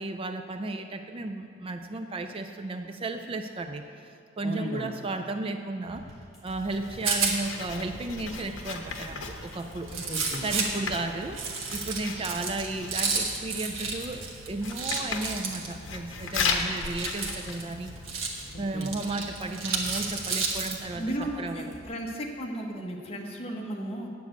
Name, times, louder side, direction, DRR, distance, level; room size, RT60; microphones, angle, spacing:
voice 1, 0.0-3.8 4.4-6.1 6.4-9.9 10.4-18.3 18.6-21.7, right 2 dB, 30° right, 6 dB, 0.4 m, -34 dB
voice 2, 4.4-4.9 9.9-10.5 18.5-18.9 20.9-24.1, right 1 dB, 30° left, 0 dB, 1.3 m, -35 dB
sound 1, 5.8-21.8, left 2 dB, ahead, 3.2 m, -49 dB
Writing, 6.5-18.1, left 5 dB, 70° left, 1.0 m, -36 dB
Rattle, 6.7-20.8, right 4 dB, 75° right, 1.5 m, -33 dB
9.1 x 7.3 x 7.8 m, 2.4 s
head